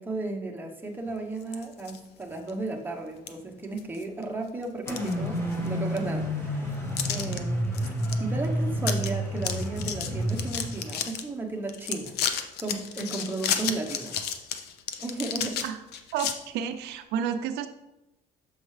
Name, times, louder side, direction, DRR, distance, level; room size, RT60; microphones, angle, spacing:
voice 1, 0.0-6.7 7.1-7.7 8.2-12.2 12.6-14.2 15.0-15.6, right 2 dB, 10° right, 1 dB, 1.0 m, -34 dB
sound 1, 1.4-2.0 2.5-2.6 3.3-3.4 3.8-4.2 4.6-5.7 6.0-6.1 7.0-7.4 7.7-8.2 8.4-8.5 8.8-9.1 9.4-11.2 11.7-16.3, left 8 dB, 75° left, 0.7 m, -32 dB
sound 2, 4.9-10.9, equal, 15° left, 1.6 m, -30 dB
voice 2, 16.1-17.7, right 8 dB, 90° right, 8 dB, 0.5 m, -31 dB
7.2 x 5.4 x 3.3 m, 0.94 s
cardioid pair, 110°, 17 cm